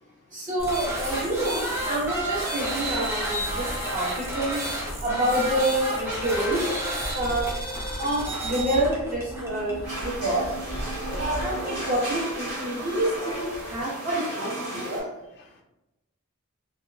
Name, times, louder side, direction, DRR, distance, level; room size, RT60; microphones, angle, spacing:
voice 1, 0.3-3.6 3.9-4.6 5.0-6.7 7.1-7.5 8.0-10.5 11.3-15.0, right 1 dB, 40° right, -5 dB, 1.0 m, -27 dB
sound 1, 0.6-13.8, right 1 dB, 10° right, 0.5 m, -32 dB
sound 2, 1.5-3.9 5.3-7.9 9.3-11.9, right 1 dB, 55° right, 1.3 m, -41 dB
sound 3, 9.8-15.0, right 1 dB, 75° right, 1.5 m, -34 dB
voice 2, 10.7-11.5 14.5-15.1 15.4-15.6, left 2 dB, 50° left, 3 dB, 0.3 m, -46 dB
2.7 x 2.3 x 2.3 m, 0.92 s
head